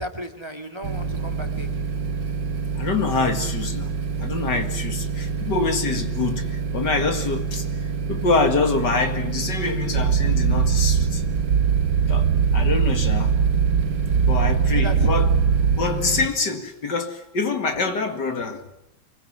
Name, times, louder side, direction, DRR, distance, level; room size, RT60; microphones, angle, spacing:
voice 1, 0.0-1.8 14.0-14.3 14.7-15.1, equal, 15° right, 2.2 m, -33 dB
sound 1, 0.8-16.3, right 5 dB, 60° right, 2.3 m, -28 dB
voice 2, 2.7-7.7 8.1-11.2 12.1-13.3 14.2-15.4 15.8-18.7, left 4 dB, 60° left, 2.7 m, -25 dB
sound 2, 9.9-15.8, right 7 dB, 85° right, 2.0 m, -21 dB
25.0 x 23.0 x 9.7 m
omnidirectional pair, 2.2 m